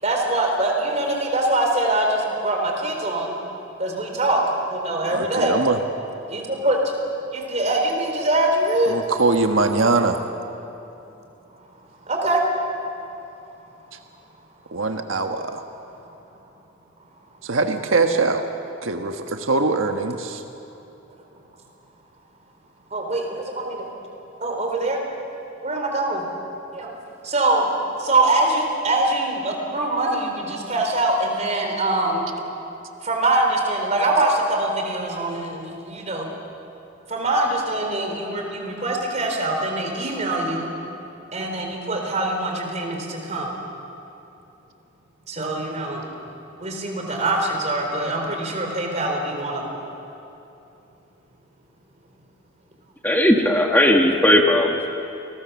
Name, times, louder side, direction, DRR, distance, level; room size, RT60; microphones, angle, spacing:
voice 1, 0.0-3.4 3.8-4.4 4.7-5.6 6.3-6.8 7.3-9.0 12.1-12.4 22.9-23.9 24.4-25.0 25.6-26.3 26.7-26.9 27.2-27.7 28.0-32.3 33.0-36.3 37.1-40.7 41.3-43.5 45.3-46.0 46.6-49.8, right 2 dB, 35° right, 2 dB, 4.2 m, -23 dB
voice 2, 5.1-5.8 8.9-10.2 14.7-15.6 17.4-18.4 18.8-20.4, right 3 dB, 85° right, 5 dB, 1.4 m, -22 dB
voice 3, 53.0-54.9, left 1 dB, 10° left, 2 dB, 1.4 m, -17 dB
29.5 x 20.0 x 7.1 m, 2.8 s
head